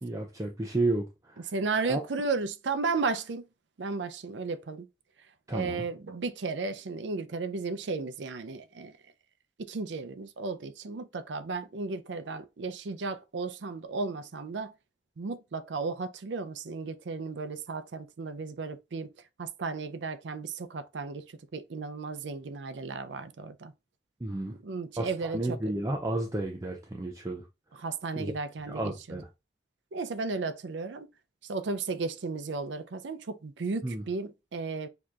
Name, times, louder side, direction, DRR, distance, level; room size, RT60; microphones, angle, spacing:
voice 1, 0.0-1.5 1.8-2.0 5.5-5.9 24.2-24.5 25.0-27.4 28.2-28.3 28.7-29.3 33.8-34.0, right 2 dB, 20° right, 0.5 m, -32 dB
voice 2, 1.5-3.4 3.8-4.9 5.5-8.9 9.6-14.7 15.2-19.1 19.4-23.7 24.5-25.7 27.7-28.9 29.9-31.1 31.4-34.9, right 4 dB, 80° right, 0.5 m, -34 dB
6.6 x 2.9 x 2.4 m
head